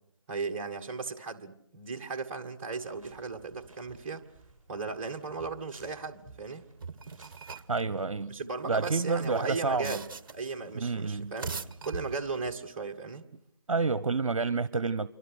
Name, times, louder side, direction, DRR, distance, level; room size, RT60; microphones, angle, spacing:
voice 1, 0.3-4.2 4.7-6.7 8.3-10.0 10.3-11.6 11.9-13.2, right 4 dB, 20° right, 1.7 m, -36 dB
sound 1, 2.7-12.6, right 2 dB, ahead, 6.1 m, -58 dB
sound 2, 6.8-7.8 8.7-10.5 11.2-12.5, right 4 dB, 40° right, 1.2 m, -41 dB
voice 2, 7.7-10.0 10.7-11.4 13.7-15.1, right 4 dB, 65° right, 0.9 m, -29 dB
28.5 x 24.5 x 6.4 m
figure-of-eight pair, 160°, 17 cm